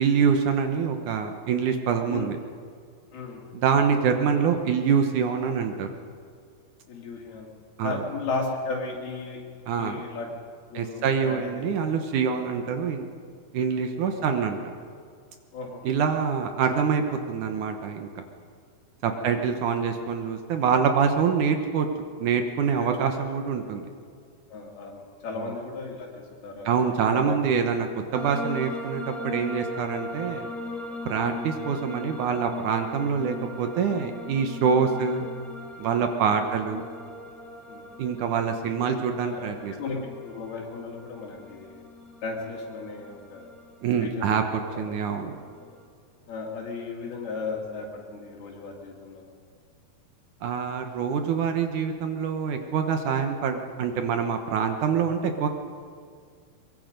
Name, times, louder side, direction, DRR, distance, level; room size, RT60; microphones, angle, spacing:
voice 1, 0.0-2.4 3.5-5.9 7.8-8.0 9.7-10.0 10.7-13.1 13.5-14.6 15.8-18.1 19.0-21.9 22.2-23.9 25.4-25.5 26.7-30.5 31.1-35.3 35.8-36.9 38.0-39.7 43.8-44.4 44.8-45.4 50.4-55.5, right 6 dB, 65° right, 6 dB, 2.2 m, -25 dB
voice 2, 6.9-7.5 7.8-9.4 9.8-10.3 10.7-11.7 12.3-12.4 14.1-14.3 15.5-15.8 19.0-19.4 22.7-22.9 24.5-27.4 31.1-31.3 34.7-35.0 36.2-36.5 37.7-37.9 39.2-39.5 39.8-40.0 40.2-41.8 42.2-43.5 44.0-44.4 44.7-44.8 46.3-49.2, left 3 dB, 80° left, -1 dB, 4.5 m, -35 dB
sound 1, 28.1-45.9, left 1 dB, ahead, 0.9 m, -39 dB
23.0 x 22.5 x 5.3 m, 2.2 s
omnidirectional pair, 4.4 m